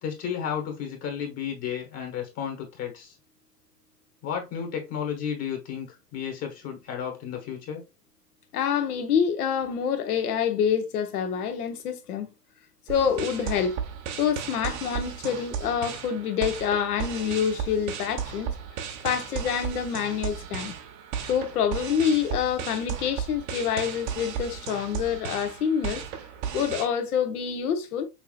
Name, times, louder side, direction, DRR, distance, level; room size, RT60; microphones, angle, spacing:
voice 1, 0.0-3.2 4.2-7.8, left 8 dB, 30° left, 1.4 m, -33 dB
voice 2, 8.5-12.3 12.9-13.8 14.2-18.5 19.0-20.7 21.3-26.0 26.5-28.1, left 7 dB, 65° left, 1.2 m, -27 dB
sound 1, 12.9-26.9, right 7 dB, 50° right, 1.1 m, -35 dB
5.9 x 2.8 x 2.4 m
hypercardioid pair, 110°, 48 cm